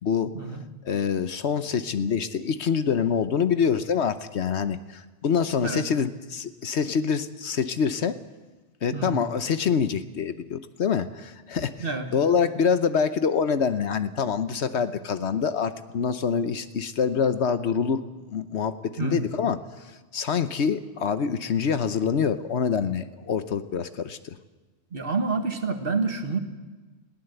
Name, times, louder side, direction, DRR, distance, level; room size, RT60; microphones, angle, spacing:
voice 1, 0.0-0.3 0.8-8.2 8.8-11.9 12.1-19.6 20.1-24.3, left 6 dB, 65° left, 11 dB, 1.2 m, -25 dB
voice 2, 8.9-9.3 11.8-12.1 19.0-19.3 24.9-26.4, right 4 dB, 50° right, 6 dB, 1.8 m, -28 dB
21.0 x 16.0 x 7.9 m, 1.2 s
omnidirectional pair, 1.2 m